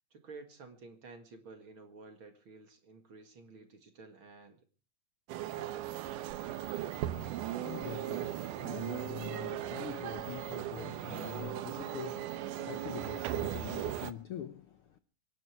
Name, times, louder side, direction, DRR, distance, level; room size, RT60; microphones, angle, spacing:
voice 1, 0.1-4.6 5.3-6.0, right 3 dB, 45° right, 2.4 m, -52 dB
sound 1, 5.3-14.1, right 12 dB, 90° right, 2.5 m, -38 dB
voice 2, 6.8-15.0, left 9 dB, 65° left, 1.4 m, -45 dB
24.5 x 11.5 x 4.6 m
omnidirectional pair, 3.6 m